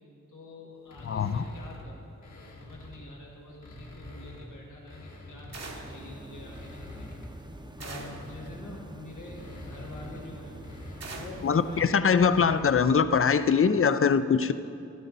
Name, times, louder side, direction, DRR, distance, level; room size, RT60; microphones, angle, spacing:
voice 1, 0.3-7.1 7.7-10.6 11.0-12.3, left 2 dB, 85° left, -3 dB, 2.0 m, -45 dB
sound 1, 0.9-3.1 3.5-5.9 6.4-13.1, left 1 dB, 65° left, 1.8 m, -47 dB
voice 2, 1.1-1.4 11.4-14.5, left 6 dB, 45° left, 12 dB, 0.5 m, -22 dB
sound 2, 5.5-6.1 7.8-8.3 11.0-11.5, right 3 dB, 60° right, 1.1 m, -42 dB
sound 3, 5.7-11.9, right 1 dB, 15° right, 0.7 m, -45 dB
13.0 x 13.0 x 4.1 m, 2.5 s
wide cardioid pair, 100°, 30 cm